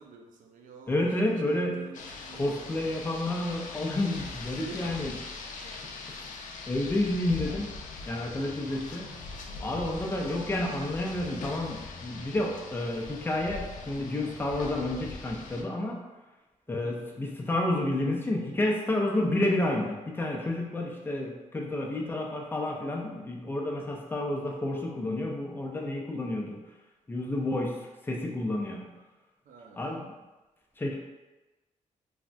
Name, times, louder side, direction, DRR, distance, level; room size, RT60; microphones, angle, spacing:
voice 1, 0.0-1.0 1.4-2.9 4.6-4.9 12.0-12.3 16.7-17.0 21.7-22.0 29.5-30.0, right 4 dB, 80° right, 3 dB, 0.4 m, -48 dB
voice 2, 0.9-1.8 2.3-5.2 5.7-5.8 6.7-7.7 8.1-9.1 9.6-16.0 16.7-26.6 27.1-28.9 29.8-30.1 30.8-31.0, left 1 dB, 15° left, -1 dB, 0.5 m, -30 dB
Rain, 1.9-15.6, left 3 dB, 75° left, 0.4 m, -41 dB
3.3 x 2.5 x 2.2 m, 1.1 s
cardioid pair, 110°, 13 cm